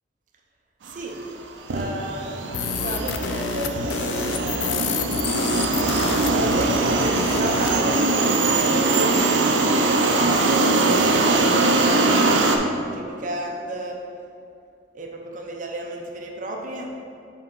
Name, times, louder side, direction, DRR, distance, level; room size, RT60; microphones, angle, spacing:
voice 1, 0.8-1.2 1.7-4.9 6.1-14.0 14.9-16.9, right 2 dB, 45° right, 0 dB, 0.7 m, -32 dB
sound 1, 1.2-1.4 1.7-12.6, right 2 dB, 85° right, 0.5 m, -21 dB
sound 2, 2.5-7.8, left 6 dB, 80° left, 0.4 m, -28 dB
6.8 x 3.8 x 3.8 m, 2.4 s
head